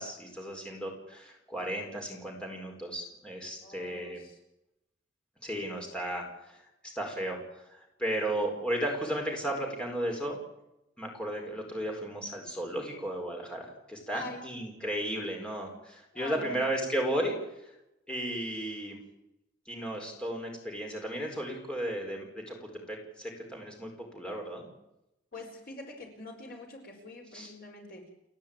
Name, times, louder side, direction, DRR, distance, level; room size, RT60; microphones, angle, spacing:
voice 1, 0.0-4.2 5.4-6.6 6.9-10.4 11.0-17.3 17.6-17.7 18.1-19.0 19.7-24.7 27.3-27.5, right 1 dB, 5° left, 0 dB, 4.4 m, -34 dB
voice 2, 3.6-4.4 14.1-14.4 16.1-16.6 25.3-28.0, left 2 dB, 50° left, 2 dB, 4.7 m, -44 dB
30.0 x 10.5 x 8.9 m, 0.87 s
head